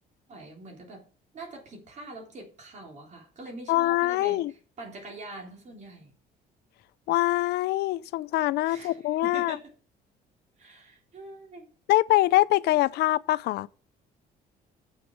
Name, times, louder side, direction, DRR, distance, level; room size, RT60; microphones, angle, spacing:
voice 1, 0.3-1.1 1.3-6.2 8.7-9.7 10.6-11.7, right 2 dB, 45° right, 3.6 m, -44 dB
voice 2, 3.7-4.5 7.1-9.6 11.9-13.7, left 16 dB, 75° left, 0.5 m, -24 dB
7.2 x 6.5 x 6.5 m
cardioid pair, 110°, 17 cm